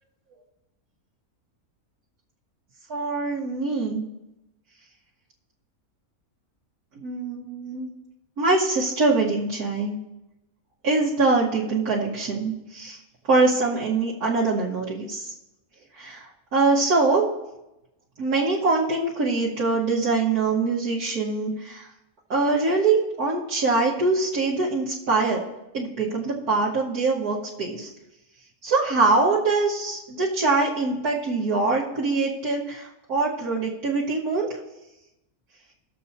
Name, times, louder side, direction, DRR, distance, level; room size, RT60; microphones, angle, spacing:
voice 1, 2.9-4.1 7.0-7.9 8.4-10.0 10.8-13.0 13.3-15.3 16.0-17.2 18.2-21.9 22.3-25.4 25.7-27.9 28.6-34.5, right 3 dB, 90° right, -7 dB, 1.9 m, -23 dB
19.5 x 7.0 x 2.8 m, 0.92 s
omnidirectional pair, 1.6 m